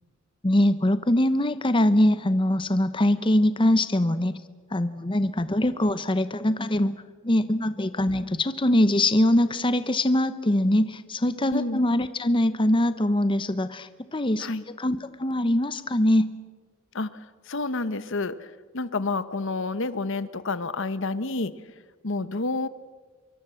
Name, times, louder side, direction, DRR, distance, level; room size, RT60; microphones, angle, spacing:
voice 1, 0.4-4.4 4.7-6.9 7.2-16.3, left 1 dB, 25° left, 12 dB, 0.9 m, -23 dB
voice 2, 11.5-11.9 14.4-14.6 16.9-21.6 22.0-22.7, left 3 dB, 65° left, 14 dB, 1.1 m, -29 dB
25.5 x 23.0 x 7.7 m, 1.3 s
head